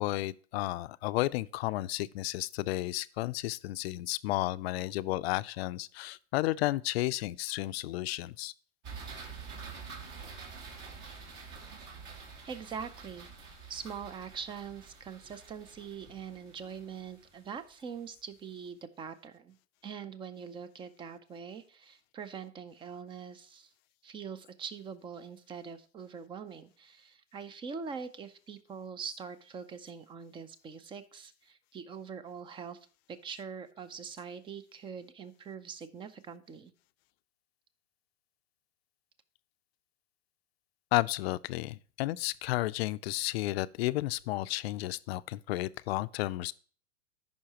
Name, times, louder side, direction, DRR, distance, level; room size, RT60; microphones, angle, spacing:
voice 1, 0.0-8.5 40.9-46.5, left 17 dB, 55° left, 0.5 m, -32 dB
sound 1, 8.8-18.0, right 5 dB, 50° right, 2.7 m, -47 dB
voice 2, 12.5-19.6 19.8-23.7 24.0-32.8 33.1-36.7, right 6 dB, 15° right, 0.5 m, -43 dB
13.5 x 5.6 x 2.9 m
hypercardioid pair, 125°, 36 cm